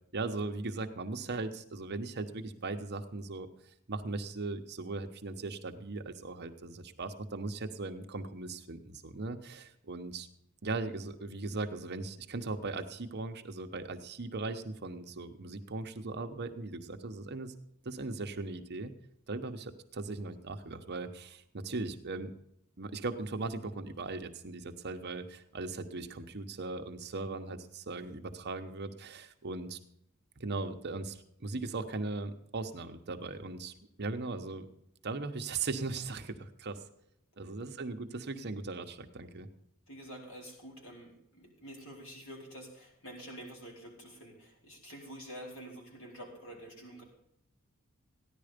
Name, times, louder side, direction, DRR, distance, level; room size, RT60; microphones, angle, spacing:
voice 1, 0.1-3.5 3.9-10.3 10.6-17.5 17.8-18.9 19.3-22.3 22.8-29.8 30.4-34.7 35.0-36.8 37.4-39.5, right 3 dB, 50° right, 6 dB, 1.0 m, -38 dB
voice 2, 39.9-47.0, equal, 65° left, -1 dB, 4.3 m, -48 dB
15.0 x 10.5 x 5.1 m, 0.75 s
head